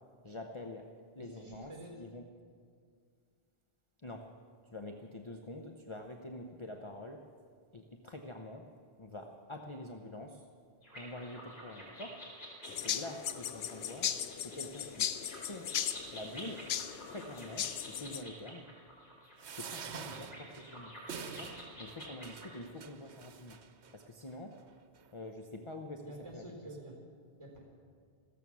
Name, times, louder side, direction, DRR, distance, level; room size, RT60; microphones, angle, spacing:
voice 1, 0.2-0.9 1.1-1.7 2.0-2.2 4.0-4.3 4.7-7.2 7.7-8.7 9.0-10.4 11.0-12.2 12.7-14.1 14.4-15.1 15.5-15.7 16.1-16.7 17.1-18.7 19.5-20.9 21.4-23.6 23.9-24.5 25.1-26.0 26.3-26.4, left 1 dB, 30° left, 3 dB, 0.8 m, -46 dB
voice 2, 1.2-1.9 13.5-13.7 26.0-26.9 27.4-27.6, right 1 dB, 25° right, 0 dB, 4.0 m, -49 dB
sound 1, 10.8-22.6, equal, 45° left, 3.7 m, -50 dB
sound 2, 12.6-18.2, left 9 dB, 70° left, 0.8 m, -38 dB
sound 3, 19.4-23.9 24.6-24.7 25.0-25.1, right 6 dB, 85° right, 1.2 m, -47 dB
15.5 x 14.0 x 6.2 m, 2.1 s
omnidirectional pair, 1.1 m